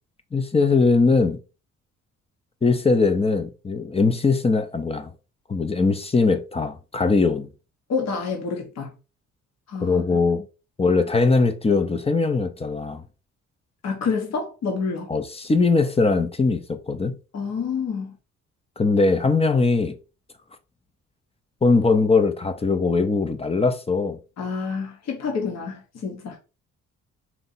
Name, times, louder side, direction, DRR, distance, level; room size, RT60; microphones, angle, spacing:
voice 1, 0.3-1.4 2.6-5.1 5.5-7.5 9.8-10.4 10.8-13.0 15.1-17.1 18.8-20.0 21.6-24.2, left 4 dB, 20° left, 0.6 m, -21 dB
voice 2, 7.9-8.9 9.7-10.0 13.8-15.1 17.3-18.1 24.4-26.4, left 5 dB, 60° left, 1.3 m, -28 dB
4.4 x 2.8 x 4.0 m
cardioid pair, 90°, 30 cm